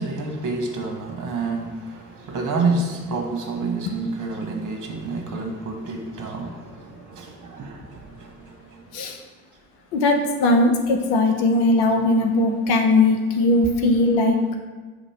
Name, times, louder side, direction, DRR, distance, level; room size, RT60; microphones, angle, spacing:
voice 1, 0.0-8.9 11.9-12.0, right 3 dB, 50° right, 1 dB, 1.4 m, -29 dB
voice 2, 9.9-14.5, left 2 dB, 75° left, 4 dB, 0.9 m, -19 dB
6.4 x 2.9 x 5.6 m, 1.4 s
hypercardioid pair, 45°, 39 cm